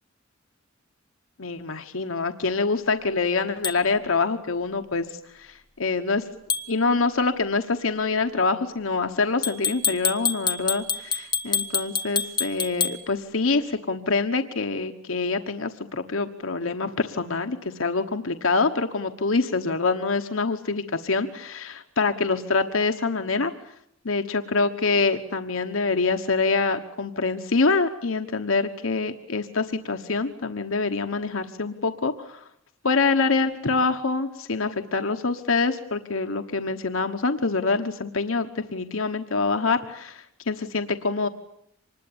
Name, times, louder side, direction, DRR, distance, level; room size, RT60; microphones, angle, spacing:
voice 1, 1.4-6.2 6.7-23.5 24.0-32.5 32.8-41.3, left 4 dB, 80° left, 7 dB, 1.2 m, -25 dB
sound 1, 3.6-3.8 6.5-6.7 9.4-13.0, left 6 dB, 20° left, 1.6 m, -26 dB
25.5 x 20.5 x 8.8 m, 0.75 s
head